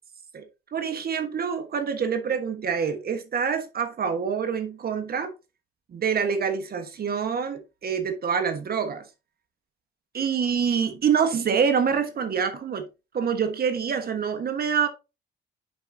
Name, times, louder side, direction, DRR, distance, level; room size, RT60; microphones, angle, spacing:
voice 1, 0.7-5.3 5.9-9.1 10.1-12.9 13.1-14.9, right 6 dB, 50° right, 1.3 m, -26 dB
11.0 x 4.7 x 2.7 m
cardioid pair, 90°, 20 cm